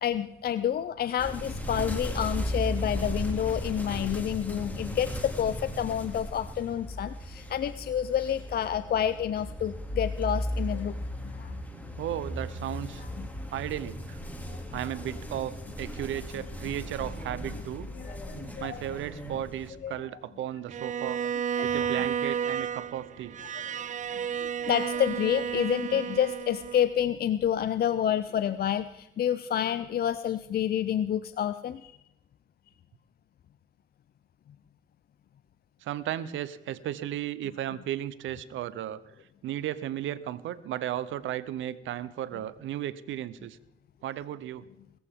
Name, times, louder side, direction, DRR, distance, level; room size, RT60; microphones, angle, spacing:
voice 1, 0.0-11.0 11.2-11.6 13.2-13.3 14.5-14.6 18.0-18.8 19.8-19.9 21.6-21.9 23.5-23.6 24.4-31.9, left 9 dB, 50° left, 13 dB, 0.6 m, -29 dB
sound 1, 1.2-19.7, equal, 10° left, 2.7 m, -36 dB
voice 2, 12.0-13.0 13.5-14.2 14.7-15.5 15.8-17.9 18.6-21.2 21.6-23.4 35.8-39.0 39.4-43.6 44.0-44.6, right 12 dB, 80° right, 16 dB, 0.8 m, -35 dB
Bowed string instrument, 20.7-26.9, right 8 dB, 40° right, 0.4 m, -32 dB
21.5 x 14.0 x 3.7 m, 0.89 s
cardioid pair, 90°, 20 cm